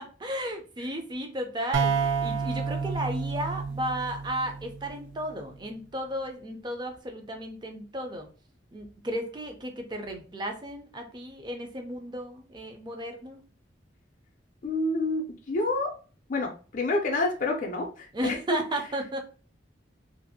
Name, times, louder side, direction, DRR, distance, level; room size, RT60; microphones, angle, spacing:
voice 1, 0.0-8.3 8.7-13.4 18.1-19.2, right 1 dB, 25° right, 4 dB, 0.5 m, -34 dB
sound 1, 1.7-5.4, right 5 dB, 80° right, 0.4 m, -30 dB
voice 2, 14.6-15.9 16.3-18.6, left 2 dB, 45° left, 1 dB, 0.5 m, -28 dB
2.6 x 2.4 x 2.6 m, 0.37 s
head